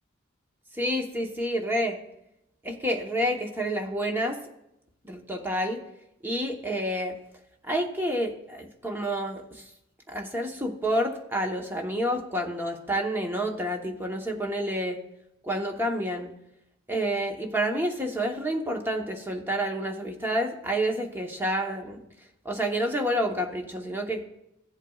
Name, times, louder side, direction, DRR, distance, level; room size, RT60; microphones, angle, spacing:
voice 1, 0.7-2.0 2.6-4.4 5.0-5.8 6.2-7.2 7.6-9.6 10.1-15.0 15.4-16.3 16.9-22.0 22.4-24.2, equal, 10° right, 2 dB, 1.0 m, -29 dB
15.0 x 8.1 x 2.4 m, 0.83 s
head